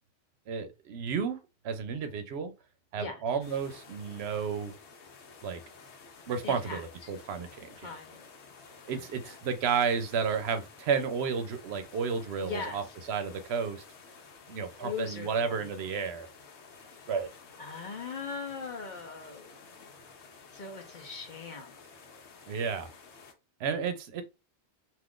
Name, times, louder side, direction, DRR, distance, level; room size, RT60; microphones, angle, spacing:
voice 1, 0.5-1.4 1.6-2.5 2.9-4.7 5.4-5.6 6.3-7.9 8.9-12.8 13.1-13.8 14.5-16.3 17.1-17.3 22.5-22.9 23.6-24.2, right 6 dB, 75° right, 0.8 m, -32 dB
sound 1, 3.4-23.3, left 5 dB, 80° left, 1.0 m, -52 dB
voice 2, 6.4-7.1 7.8-8.3 8.9-9.4 12.4-12.9 14.8-15.7 17.6-19.6 20.5-21.8, left 5 dB, 50° left, 0.7 m, -40 dB
2.5 x 2.4 x 3.5 m
omnidirectional pair, 1.1 m